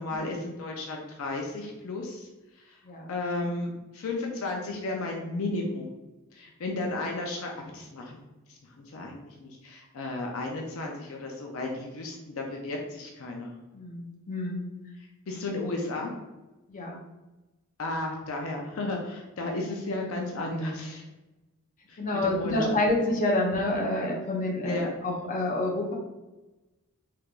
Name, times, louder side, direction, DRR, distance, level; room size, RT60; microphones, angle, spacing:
voice 1, 0.0-2.3 2.7-2.8 3.1-5.9 6.3-8.2 8.9-13.5 15.3-16.1 17.8-21.0 21.9-22.7 24.6-24.9, left 2 dB, 70° left, 1 dB, 0.5 m, -33 dB
voice 2, 13.7-14.6 16.7-17.0 22.0-25.9, left 1 dB, 40° left, -2 dB, 0.7 m, -28 dB
3.3 x 3.3 x 2.4 m, 1.1 s
head